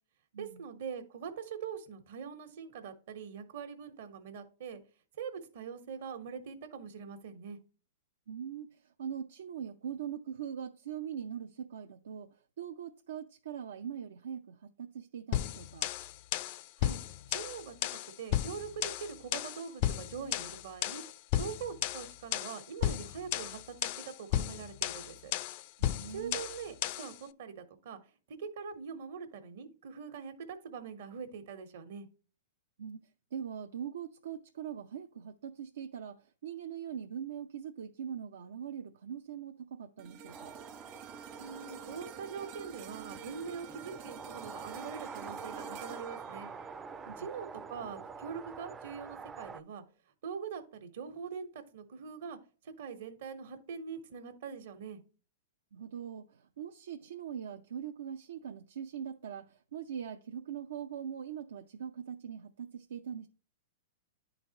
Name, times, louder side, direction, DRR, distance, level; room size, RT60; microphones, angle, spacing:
voice 1, 0.4-4.8 5.1-7.6 16.8-17.0 17.3-21.0 21.4-25.3 26.1-28.0 28.3-32.1 41.4-46.5 47.2-49.8 50.2-52.4 52.8-55.0, right 6 dB, 65° right, 1.2 m, -43 dB
voice 2, 8.3-15.9 25.8-26.4 32.8-33.0 33.3-40.6 47.1-47.3 55.7-63.3, right 8 dB, 80° right, 0.5 m, -42 dB
sound 1, 15.3-27.2, left 12 dB, 50° left, 0.4 m, -34 dB
sound 2, 40.0-48.3 48.8-49.0, right 6 dB, 45° right, 0.8 m, -49 dB
sound 3, 40.3-49.6, right 5 dB, 15° right, 0.4 m, -47 dB
10.5 x 3.9 x 2.9 m
hypercardioid pair, 135°, 0 cm